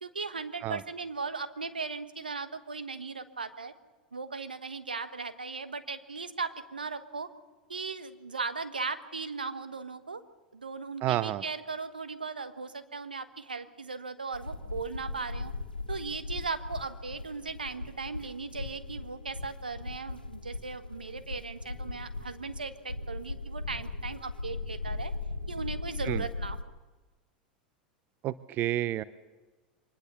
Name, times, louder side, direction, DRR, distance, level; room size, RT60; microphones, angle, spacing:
voice 1, 0.0-3.7 4.1-7.3 7.7-10.2 10.5-15.5 15.9-25.1 25.5-26.7, right 4 dB, 85° right, 10 dB, 1.3 m, -37 dB
voice 2, 11.0-11.4 26.1-26.2 28.2-29.0, right 14 dB, 40° right, 17 dB, 0.7 m, -30 dB
sound 1, 14.3-26.6, left 3 dB, 90° left, 1.5 m, -38 dB
24.0 x 20.0 x 6.9 m, 1.3 s
figure-of-eight pair, 85°, 5 cm